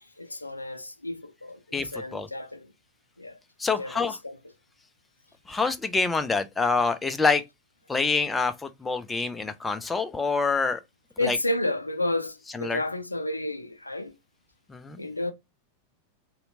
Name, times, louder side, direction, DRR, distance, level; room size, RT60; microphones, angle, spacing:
voice 1, 0.2-2.7 3.2-3.4 3.8-4.3 11.2-14.1 15.0-15.3, left 2 dB, 85° left, 0.3 m, -31 dB
voice 2, 1.7-2.3 3.6-4.2 5.5-7.4 7.9-10.8 11.2-11.4 12.5-12.8 14.7-15.1, left 4 dB, 10° left, 0.4 m, -26 dB
3.1 x 2.8 x 2.6 m
figure-of-eight pair, 90°, 0 cm